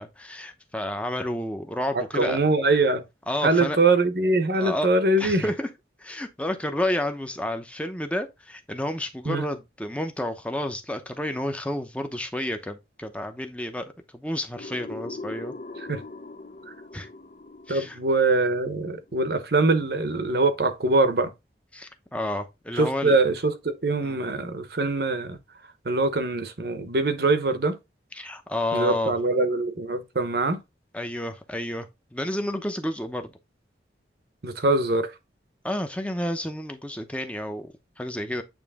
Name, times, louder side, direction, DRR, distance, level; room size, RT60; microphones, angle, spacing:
voice 1, 0.0-2.4 3.3-3.8 4.5-4.9 5.2-5.7 6.0-15.5 16.9-17.1 17.7-18.0 21.7-23.2 24.0-24.2 28.1-29.1 30.9-33.4 35.6-38.4, left 1 dB, 5° left, 0.7 m, -30 dB
voice 2, 1.9-3.0 3.4-5.4 9.2-9.5 15.9-16.0 17.7-21.3 22.7-25.4 25.8-27.8 28.7-30.6 34.4-35.1, right 2 dB, 60° right, 0.9 m, -23 dB
sound 1, 14.6-19.3, left 3 dB, 45° left, 0.6 m, -41 dB
8.9 x 3.1 x 3.6 m
head